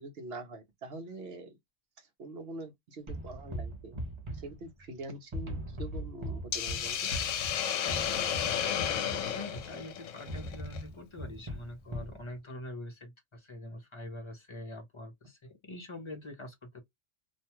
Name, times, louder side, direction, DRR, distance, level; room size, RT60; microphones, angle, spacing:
voice 1, 0.0-1.6 2.0-4.0 4.3-7.1, right 2 dB, 60° right, 0.9 m, -44 dB
sound 1, 3.1-5.0 5.3-9.8 10.3-12.2, equal, 30° right, 0.6 m, -40 dB
Hiss, 6.5-10.8, left 9 dB, 80° left, 0.9 m, -32 dB
voice 2, 9.3-16.8, left 1 dB, 30° left, 0.6 m, -44 dB
2.5 x 2.2 x 2.9 m
omnidirectional pair, 1.3 m